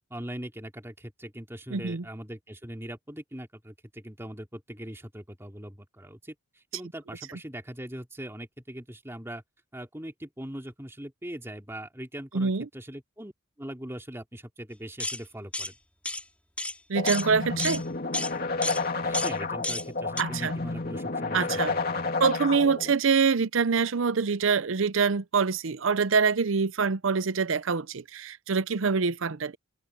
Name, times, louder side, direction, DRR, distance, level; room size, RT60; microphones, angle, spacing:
voice 1, 0.1-9.4 9.7-13.3 13.6-15.7 19.0-22.2, right 1 dB, 10° right, 3.2 m, -41 dB
voice 2, 1.7-2.0 12.3-12.7 16.9-17.8 20.2-20.5 21.3-21.8 22.2-29.6, right 5 dB, 70° right, 0.6 m, -25 dB
sound 1, 15.0-15.2 15.5-15.7 16.0-16.2 16.6-16.7 17.1-17.3 17.6-17.8 18.1-18.3 18.6-18.8 19.1-19.3 19.6-19.8 20.2-20.3, left 2 dB, 5° left, 2.8 m, -31 dB
sound 2, 16.9-22.9, left 3 dB, 45° left, 2.8 m, -30 dB
open air
head